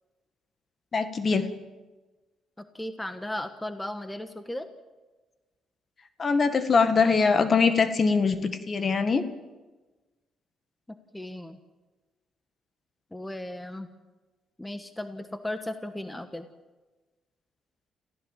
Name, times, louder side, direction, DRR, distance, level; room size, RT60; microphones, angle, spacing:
voice 1, 0.9-1.5 6.2-9.2, left 5 dB, 40° left, 10 dB, 1.7 m, -22 dB
voice 2, 2.6-4.7 10.9-11.6 13.1-13.9 14.6-16.5, left 1 dB, 10° left, 9 dB, 1.3 m, -36 dB
28.0 x 15.0 x 7.5 m, 1.2 s
cardioid pair, 90°, 0 cm